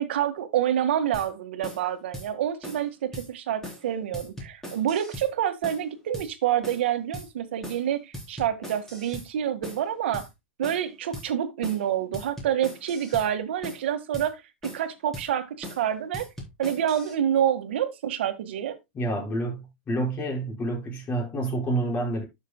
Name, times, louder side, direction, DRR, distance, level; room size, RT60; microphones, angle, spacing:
voice 1, 0.0-10.3 10.6-14.3 14.7-16.2 16.6-18.8, right 10 dB, 70° right, 1.7 m, -27 dB
sound 1, 1.1-1.3 1.6-1.8 2.1-2.3 2.6-2.9 3.1-3.3 3.6-3.8 4.1-5.3 5.6-5.9 6.1-6.3 6.6-6.9 7.1-7.3 7.6-7.9 8.1-9.3 9.6-9.8 10.1-10.3 10.6-10.9 11.1-11.3 11.6-11.9 12.1-13.3 13.6-13.8 14.1-14.3 14.6-14.9 15.1-15.3 15.6-15.8 16.1-17.1, equal, 5° left, 3.9 m, -40 dB
voice 2, 18.9-22.2, right 1 dB, 25° left, 5.7 m, -28 dB
12.5 x 6.5 x 2.2 m
hypercardioid pair, 135°, 6 cm